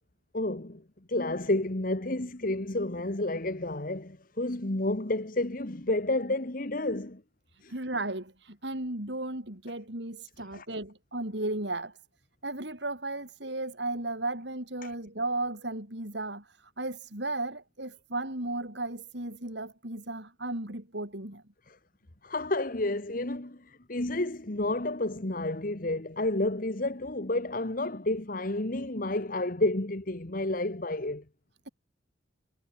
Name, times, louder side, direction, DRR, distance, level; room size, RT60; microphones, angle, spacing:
voice 1, 0.3-0.8 1.1-7.2 7.6-7.7 10.5-10.6 14.8-14.9 21.7-21.8 22.2-31.2, left 2 dB, 45° left, 1.6 m, -30 dB
voice 2, 7.7-12.0 12.4-21.4, right 2 dB, 65° right, 5.9 m, -35 dB
head